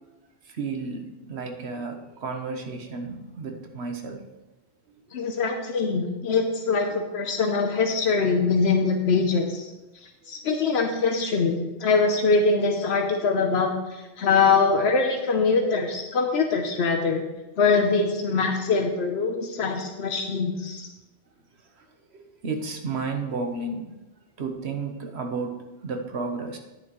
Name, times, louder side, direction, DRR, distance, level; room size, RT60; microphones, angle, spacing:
voice 1, 0.4-4.2 21.8-21.9 22.1-23.9 24.4-26.6, right 4 dB, 85° right, 4 dB, 1.3 m, -32 dB
voice 2, 5.1-9.7 10.3-17.2 17.6-20.9, left 4 dB, 85° left, 3 dB, 1.1 m, -23 dB
10.0 x 9.1 x 3.1 m, 1.0 s
omnidirectional pair, 1.1 m